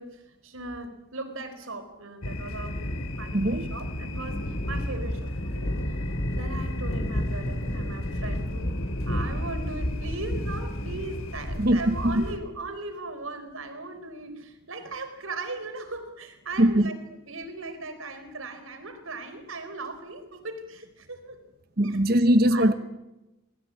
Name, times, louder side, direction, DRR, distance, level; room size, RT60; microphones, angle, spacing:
voice 1, 0.0-6.0 6.4-8.8 9.1-17.0 17.3-21.4 21.8-22.0 22.5-22.7, right 2 dB, 85° right, 4.4 m, -38 dB
sound 1, 2.2-12.4, left 1 dB, 85° left, 3.3 m, -31 dB
voice 2, 3.3-3.7 11.6-12.2 16.6-16.9 21.8-22.7, right 1 dB, 45° right, 1.1 m, -21 dB
26.5 x 20.0 x 8.5 m
head